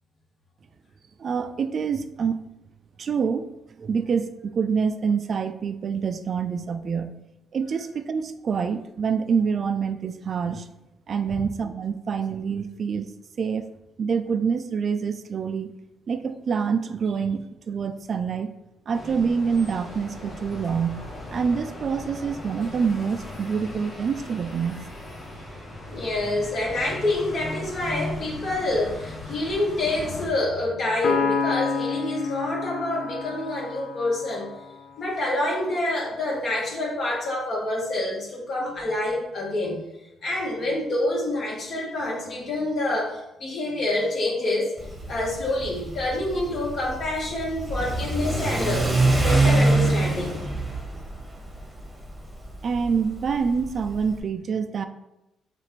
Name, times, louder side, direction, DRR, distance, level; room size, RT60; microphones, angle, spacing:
voice 1, 1.2-2.4 3.0-7.1 7.5-10.7 11.1-13.1 13.4-13.7 14.0-15.7 16.1-18.5 18.9-21.0 21.3-24.8 52.6-54.9, right 6 dB, 50° right, 9 dB, 0.3 m, -26 dB
sound 1, 18.9-30.3, left 1 dB, 40° left, 1.6 m, -39 dB
voice 2, 25.9-34.5 35.0-39.8 40.2-44.7 45.1-48.9 49.2-50.4, left 1 dB, 55° left, -3 dB, 1.5 m, -27 dB
Piano, 31.0-34.6, left 5 dB, 70° left, 0.5 m, -29 dB
Car / Accelerating revving vroom, 44.8-54.2, right 2 dB, 5° right, 1.1 m, -25 dB
5.8 x 2.5 x 3.2 m, 0.90 s
cardioid pair, 90°, 0 cm